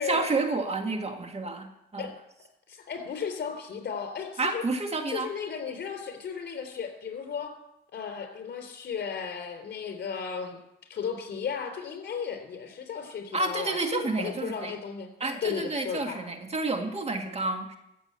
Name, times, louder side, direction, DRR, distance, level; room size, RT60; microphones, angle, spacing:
voice 1, 0.0-2.1 4.4-5.3 13.3-14.7 15.2-17.8, right 3 dB, 30° right, 5 dB, 1.9 m, -30 dB
voice 2, 2.7-4.6 5.1-7.5 7.9-10.6 10.9-15.1 15.4-16.2, left 6 dB, 55° left, 5 dB, 3.7 m, -35 dB
15.0 x 7.3 x 8.1 m, 0.84 s
cardioid pair, 90°, 20 cm